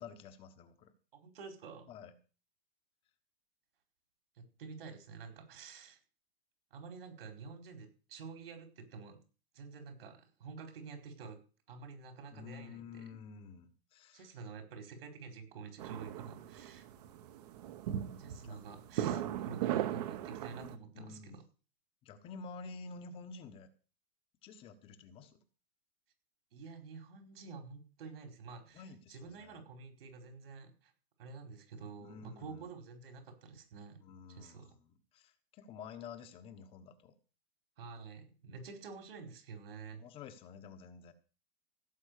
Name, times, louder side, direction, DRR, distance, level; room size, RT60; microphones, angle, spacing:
voice 1, 0.0-0.9 1.9-2.1 12.3-14.3 18.4-18.6 20.6-21.4 22.0-23.7 24.4-25.4 28.7-29.6 32.0-32.7 34.0-37.2 39.9-41.1, left 5 dB, 20° left, 10 dB, 1.2 m, -50 dB
voice 2, 1.1-1.9 4.4-6.0 6.7-9.2 9.5-11.4 11.7-13.0 14.1-16.8 18.2-21.4 26.5-28.8 29.1-30.9 31.2-34.0 34.3-34.7 37.8-40.0, right 5 dB, 70° right, 6 dB, 4.7 m, -49 dB
sound 1, 15.8-20.7, right 11 dB, 40° right, 1.3 m, -38 dB
16.5 x 8.0 x 6.6 m, 0.36 s
supercardioid pair, 170°, 31 cm